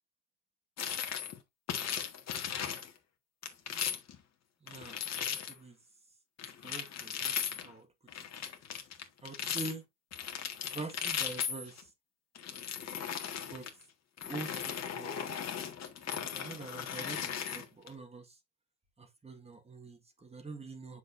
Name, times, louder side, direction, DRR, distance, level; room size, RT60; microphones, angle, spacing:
sound 1, 0.8-1.4 1.7-2.9 3.4-4.2 4.7-5.6 6.4-7.7 8.1-9.7 10.1-11.8 12.4-13.7 14.2-17.9, left 8 dB, 35° left, 1.7 m, -37 dB
voice 1, 4.6-5.0 5.5-5.8 6.4-7.3 7.6-7.9 9.2-9.8 10.6-11.7 13.5-13.7 14.3-15.1 16.1-18.3 19.0-21.0, right 3 dB, 10° right, 1.6 m, -45 dB
7.4 x 6.1 x 2.6 m
supercardioid pair, 110°, 48 cm